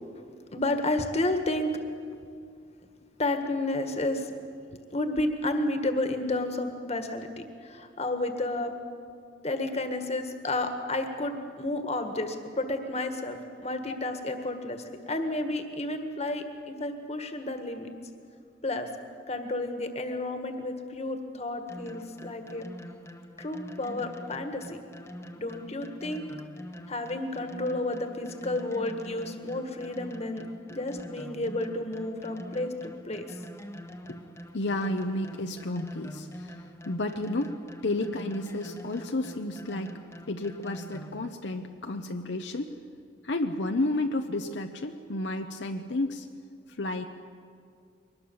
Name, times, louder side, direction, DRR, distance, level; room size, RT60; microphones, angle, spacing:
voice 1, 0.5-1.8 3.2-4.3 4.9-8.7 9.4-17.9 18.6-18.9 19.3-22.7 23.4-24.8 25.3-26.2 26.9-33.4, left 2 dB, 35° left, 6 dB, 1.7 m, -31 dB
sound 1, 21.7-41.3, equal, 15° left, 1.1 m, -45 dB
voice 2, 34.5-39.9 40.3-42.8 43.2-46.3 46.7-47.1, left 2 dB, 70° left, 5 dB, 0.9 m, -32 dB
22.5 x 19.5 x 7.2 m, 2.3 s
head